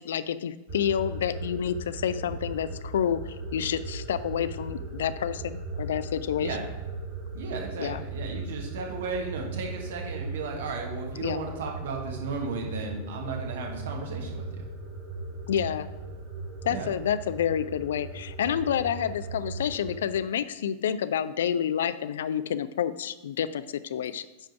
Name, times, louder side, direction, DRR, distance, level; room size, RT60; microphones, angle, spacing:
voice 1, 0.0-3.2 3.5-6.6 7.8-8.0 11.2-11.5 15.5-15.9 16.6-24.3, left 9 dB, 60° left, 13 dB, 0.3 m, -29 dB
sound 1, 0.7-20.0, right 2 dB, 35° right, 1.5 m, -38 dB
voice 2, 7.3-14.4 16.7-16.9, right 4 dB, 60° right, 1 dB, 1.6 m, -35 dB
9.7 x 3.4 x 5.7 m, 1.1 s
figure-of-eight pair, 90°, 0 cm